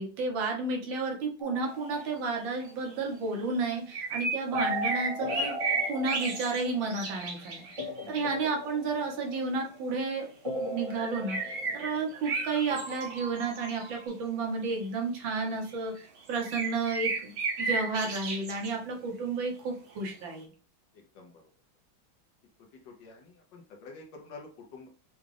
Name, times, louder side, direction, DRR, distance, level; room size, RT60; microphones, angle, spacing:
voice 1, 0.0-5.6 5.9-10.3 10.6-20.4, right 4 dB, 70° right, 1 dB, 1.8 m, -32 dB
sound 1, 1.4-2.7 4.5-7.1 7.8-9.7 10.4-12.4 12.7-14.1, equal, 30° right, 0.6 m, -38 dB
sound 2, 2.4-3.0 3.9-8.1 10.9-14.1 14.8-14.9 15.5-15.8 16.2-18.7 20.0-20.1, right 3 dB, 55° right, 1.4 m, -34 dB
voice 2, 22.9-24.9, left 4 dB, 70° left, 2 dB, 1.4 m, -48 dB
6.2 x 2.4 x 3.3 m, 0.39 s
omnidirectional pair, 2.2 m